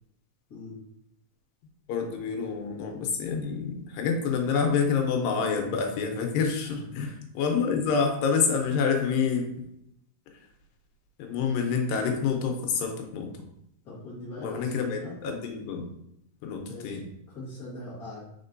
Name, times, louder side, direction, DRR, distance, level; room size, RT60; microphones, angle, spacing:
voice 1, 1.9-9.6 11.2-13.3 14.4-15.8 16.4-17.0, left 5 dB, 85° left, 3 dB, 2.5 m, -27 dB
voice 2, 13.8-15.1 16.7-17.0 17.3-18.2, left 2 dB, 60° left, -9 dB, 0.9 m, -41 dB
4.7 x 4.3 x 2.6 m, 0.78 s
omnidirectional pair, 3.9 m